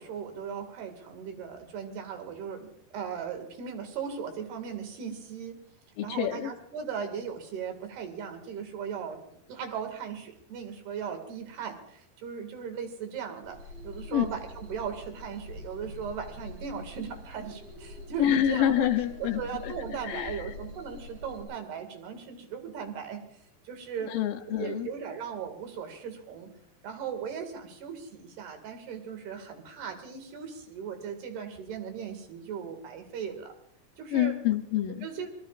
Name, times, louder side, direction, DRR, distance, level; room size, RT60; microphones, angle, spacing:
voice 1, 0.0-5.6 6.0-9.2 9.5-18.9 19.2-23.2 23.7-24.2 24.5-26.5 26.8-33.5 34.0-34.4 35.0-35.3, right 7 dB, 70° right, 6 dB, 4.0 m, -38 dB
voice 2, 6.0-6.5 14.1-14.3 18.2-19.7 20.0-20.5 24.1-24.9 34.1-35.1, left 11 dB, 90° left, 5 dB, 1.9 m, -27 dB
sound 1, 13.4-21.4, left 2 dB, 90° right, 8.2 m, -44 dB
25.5 x 20.5 x 2.4 m, 0.68 s
omnidirectional pair, 4.9 m